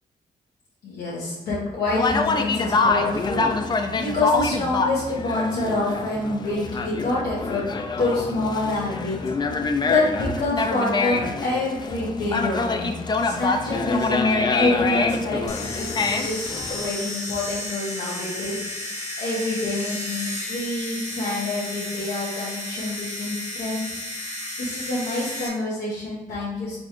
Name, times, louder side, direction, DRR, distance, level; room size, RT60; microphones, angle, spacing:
voice 1, 0.8-7.6 8.0-12.9 13.2-23.8 24.6-26.8, left 2 dB, 90° left, -7 dB, 1.1 m, -27 dB
Conversation, 1.9-16.9, left 4 dB, 30° left, 0.4 m, -25 dB
sound 1, 15.5-25.5, left 2 dB, 45° left, 0.9 m, -33 dB
3.9 x 3.7 x 3.1 m, 1.0 s
cardioid pair, 95°, 16 cm